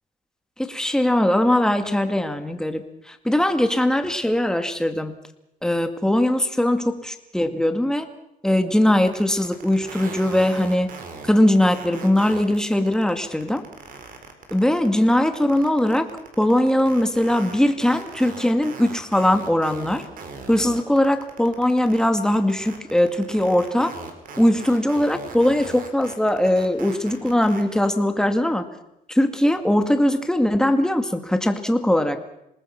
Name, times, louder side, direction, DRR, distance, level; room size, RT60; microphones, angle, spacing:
voice 1, 0.6-5.1 5.6-8.1 8.4-10.9 11.2-13.7 14.5-16.1 16.4-20.1 20.5-23.9 24.4-28.7 29.1-32.2, left 1 dB, 5° left, 7 dB, 2.2 m, -20 dB
sound 1, 9.0-27.9, right 5 dB, 55° right, 4.4 m, -39 dB
27.0 x 20.0 x 5.9 m, 0.83 s
cardioid pair, 110°, 17 cm